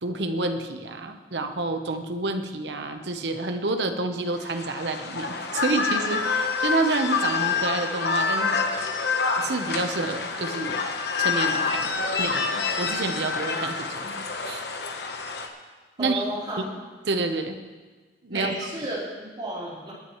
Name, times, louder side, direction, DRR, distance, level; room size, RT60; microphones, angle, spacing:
voice 1, 0.0-8.6 9.4-10.8 11.2-14.6 16.0-16.2 17.1-17.6 18.2-18.6, right 2 dB, 75° right, 6 dB, 1.0 m, -29 dB
sound 1, 4.4-15.5, left 4 dB, 65° left, 1.1 m, -27 dB
voice 2, 16.0-16.6 18.3-19.9, right 1 dB, 25° right, -8 dB, 4.2 m, -32 dB
19.5 x 9.6 x 3.2 m, 1.4 s
head